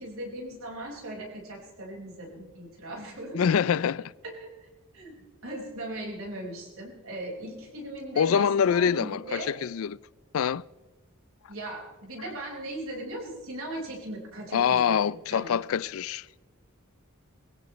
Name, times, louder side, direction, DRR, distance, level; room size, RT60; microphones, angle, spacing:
voice 1, 0.0-3.6 4.2-4.5 4.9-5.2 5.4-9.5 11.5-15.0 15.3-15.6, right 1 dB, 75° right, 5.1 m, -38 dB
voice 2, 3.3-4.1 8.2-10.0 10.3-10.6 14.5-16.3, left 7 dB, 75° left, 0.4 m, -25 dB
21.5 x 17.0 x 3.1 m
head